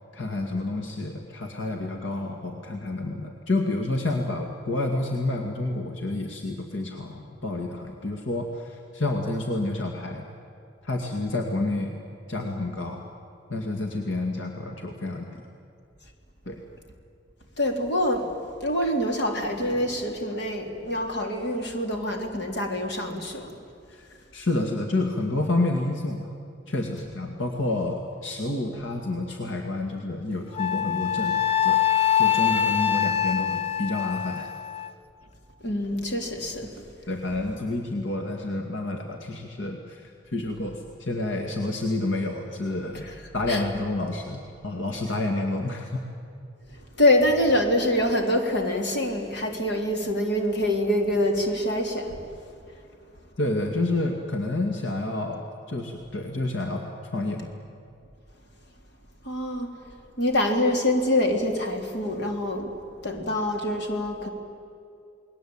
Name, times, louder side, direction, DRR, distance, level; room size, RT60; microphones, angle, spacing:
voice 1, 0.0-10.3 10.8-12.0 12.3-13.0 13.5-15.4 16.5-16.6 23.9-26.3 26.7-34.5 37.1-43.0 43.3-46.0 53.4-57.5, left 2 dB, 80° left, 3 dB, 2.2 m, -29 dB
voice 2, 17.6-18.3 18.6-23.5 35.6-36.9 43.0-43.1 43.5-43.6 47.0-52.2 59.2-59.7 60.2-62.7 63.0-64.3, left 1 dB, 60° left, 3 dB, 3.5 m, -25 dB
Wind instrument woodwind instrument, 30.6-34.9, left 10 dB, 30° left, 0.9 m, -24 dB
29.5 x 20.5 x 8.8 m, 2.5 s
head